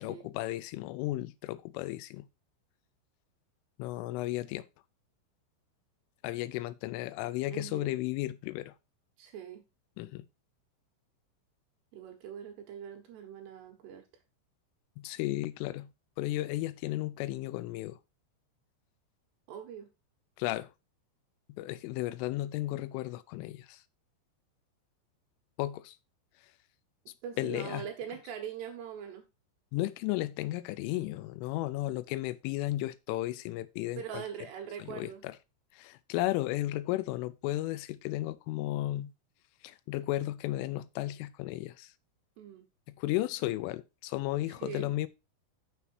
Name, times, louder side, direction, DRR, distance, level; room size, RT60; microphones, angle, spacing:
voice 1, 0.0-2.3 3.8-4.7 6.2-8.7 10.0-10.3 15.0-15.9 16.2-18.0 20.4-20.7 21.6-23.8 25.6-26.0 27.4-27.9 29.7-34.2 34.8-35.3 35.7-39.1 39.6-41.9 43.0-45.1, left 16 dB, 90° left, 3.2 m, -34 dB
voice 2, 7.5-8.0 9.2-9.6 11.9-14.0 19.5-19.9 27.2-29.3 34.0-35.2 42.4-42.6 44.5-44.9, right 8 dB, 70° right, 3.2 m, -42 dB
7.5 x 6.7 x 4.5 m
omnidirectional pair, 5.6 m